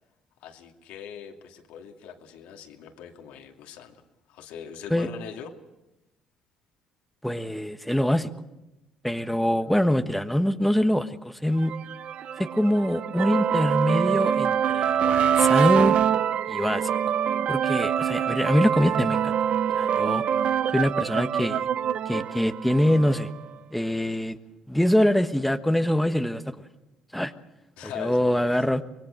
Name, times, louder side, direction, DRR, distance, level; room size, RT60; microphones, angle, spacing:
voice 1, 0.4-4.0 4.3-5.5 9.4-9.7 27.8-28.4, left 8 dB, 75° left, 3 dB, 2.5 m, -41 dB
voice 2, 7.2-8.3 9.0-11.7 12.4-16.0 16.5-16.9 17.5-19.3 19.7-20.2 20.7-21.7 22.1-23.3 23.7-24.4 24.7-26.6 27.1-27.3 27.8-28.8, equal, ahead, 7 dB, 1.3 m, -24 dB
sound 1, 11.6-23.4, right 9 dB, 60° right, 0.8 m, -25 dB
25.0 x 21.5 x 6.6 m, 0.97 s
hypercardioid pair, 65°, 2 cm